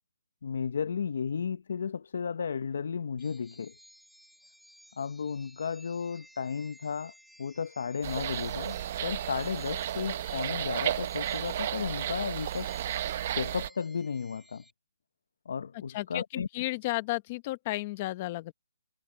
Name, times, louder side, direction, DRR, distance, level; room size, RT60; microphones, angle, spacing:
voice 1, 0.4-3.7 5.0-7.1 7.4-12.7 13.3-14.6 15.5-16.5, left 6 dB, 55° left, 0.6 m, -34 dB
sound 1, 3.2-14.7, equal, ahead, 5.7 m, -57 dB
sound 2, 8.0-13.7, right 11 dB, 30° right, 0.6 m, -33 dB
voice 2, 15.9-18.5, left 19 dB, 25° left, 0.9 m, -33 dB
hypercardioid pair, 175°, 0 cm